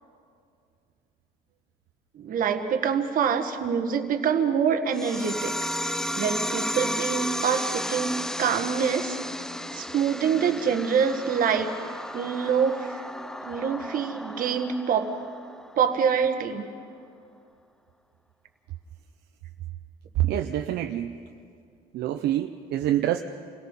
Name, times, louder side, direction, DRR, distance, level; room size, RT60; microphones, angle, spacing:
voice 1, 2.2-8.1 8.4-9.2 9.7-11.7 12.1-12.9 13.4-15.1 15.8-16.6, right 7 dB, 55° right, 6 dB, 1.6 m, -25 dB
sound 1, 4.9-16.0, equal, 5° left, 0.5 m, -33 dB
voice 2, 20.2-21.2 21.9-23.2, right 12 dB, 75° right, 5 dB, 0.7 m, -26 dB
28.5 x 17.5 x 5.6 m, 2.3 s
cardioid pair, 110°, 17 cm